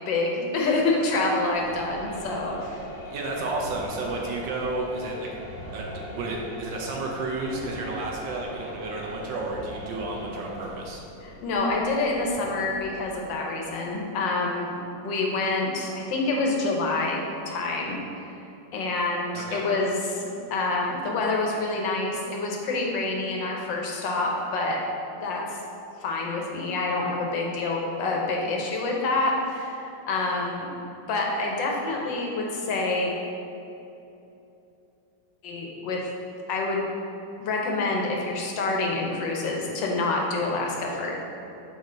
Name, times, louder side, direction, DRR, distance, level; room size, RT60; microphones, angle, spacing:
voice 1, 0.1-2.8 11.2-18.0 18.7-20.2 20.5-24.8 25.1-25.6 26.0-30.7 31.1-33.1 35.4-36.1 36.5-36.8 37.4-41.1, left 3 dB, 85° left, -1 dB, 1.6 m, -27 dB
sound 1, 1.4-13.3, left 1 dB, 60° left, 1.3 m, -41 dB
voice 2, 3.1-5.3 5.7-11.0 19.3-19.7, right 2 dB, 85° right, -1 dB, 1.4 m, -32 dB
6.5 x 4.4 x 3.8 m, 2.8 s
omnidirectional pair, 2.0 m